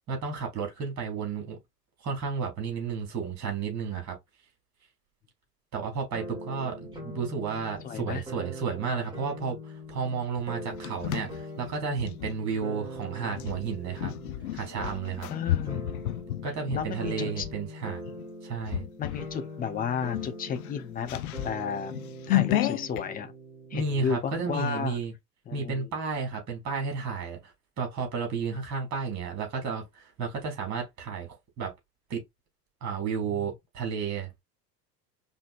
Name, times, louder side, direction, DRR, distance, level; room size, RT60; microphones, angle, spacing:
voice 1, 0.1-1.6 2.0-4.2 5.7-14.1 14.5-15.3 16.4-18.0 18.4-18.9 23.7-25.1 25.5-31.7 32.1-32.2 32.8-34.4, right 5 dB, 35° right, 2.8 m, -32 dB
sound 1, 6.1-24.0, equal, 10° right, 2.2 m, -42 dB
voice 2, 7.8-8.2 15.3-16.0 16.7-17.5 19.0-21.9 22.3-23.3 23.7-25.0 25.5-25.9, left 7 dB, 15° left, 0.8 m, -33 dB
sound 2, 10.4-12.4 13.3-17.6 18.0-18.3 18.7-19.3 19.7-19.8 20.1-23.0, left 14 dB, 60° left, 0.6 m, -32 dB
5.1 x 2.8 x 2.5 m
figure-of-eight pair, 85°, 50 cm